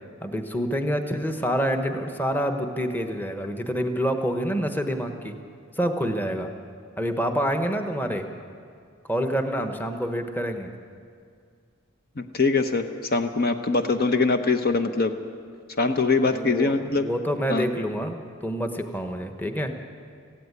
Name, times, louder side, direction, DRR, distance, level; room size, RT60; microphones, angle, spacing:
voice 1, 0.2-5.3 5.8-6.5 7.0-8.3 9.0-10.7 16.3-19.8, equal, 10° left, 6 dB, 1.2 m, -27 dB
voice 2, 12.2-12.8 13.1-15.1 15.8-17.1 17.5-17.7, left 3 dB, 50° left, 7 dB, 1.0 m, -23 dB
17.5 x 15.5 x 9.7 m, 2.2 s
head